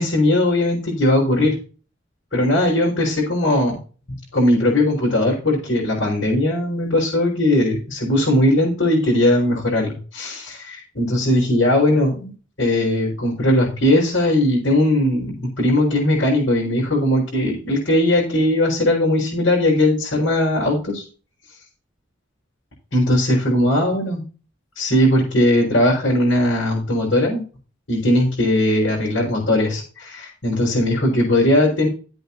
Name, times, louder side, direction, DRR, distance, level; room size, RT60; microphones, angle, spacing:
voice 1, 0.0-1.6 2.3-3.8 4.3-21.0 22.9-24.2 24.8-27.4 27.9-31.9, left 1 dB, 85° left, -6 dB, 5.8 m, -19 dB
14.5 x 8.4 x 2.9 m, 0.36 s
head